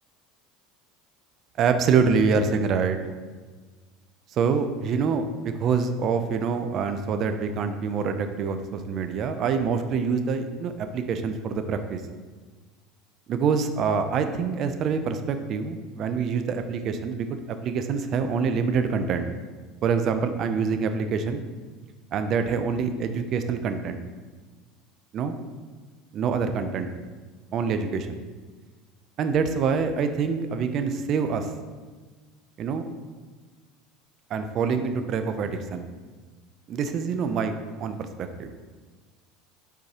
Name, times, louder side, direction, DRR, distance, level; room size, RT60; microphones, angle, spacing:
voice 1, 1.6-3.0 4.3-12.0 13.3-19.3 19.8-21.4 22.1-24.0 25.1-25.3 26.1-26.9 27.5-28.2 29.2-31.5 32.6-32.9 34.3-35.9 36.7-38.5, right 5 dB, 45° right, 8 dB, 0.5 m, -26 dB
6.9 x 4.7 x 2.9 m, 1.4 s
supercardioid pair, 100°, 0 cm